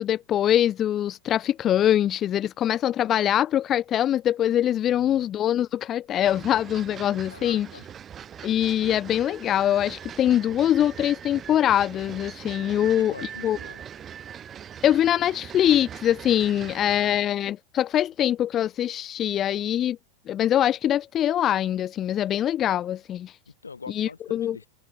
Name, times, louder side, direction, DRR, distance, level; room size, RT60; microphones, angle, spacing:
voice 1, 0.0-7.7 8.4-13.1 13.4-13.6 14.8-20.0 20.3-23.4 23.9-24.6, left 11 dB, 30° left, 0.9 m, -23 dB
voice 2, 4.8-5.3 7.3-7.8 12.8-13.8 16.5-17.2 23.5-24.7, left 4 dB, 75° left, 5.4 m, -44 dB
sound 1, 6.2-17.2, right 9 dB, 25° right, 6.0 m, -41 dB
figure-of-eight pair, 90°, 0 cm